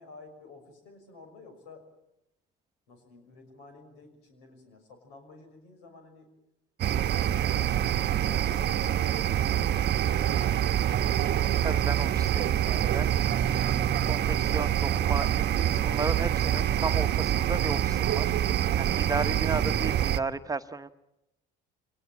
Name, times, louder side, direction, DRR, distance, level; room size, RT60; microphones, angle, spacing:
voice 1, 0.0-1.9 2.9-6.3 6.8-7.8 8.3-10.7 19.4-19.7, left 3 dB, 90° left, 6 dB, 6.1 m, -51 dB
sound 1, 6.8-20.2, right 10 dB, 55° right, 0.9 m, -26 dB
voice 2, 11.6-13.1 14.0-15.3 15.5-18.3 18.8-20.9, right 3 dB, 15° right, 8 dB, 1.1 m, -34 dB
24.5 x 19.5 x 8.6 m, 0.87 s
supercardioid pair, 85°, 21 cm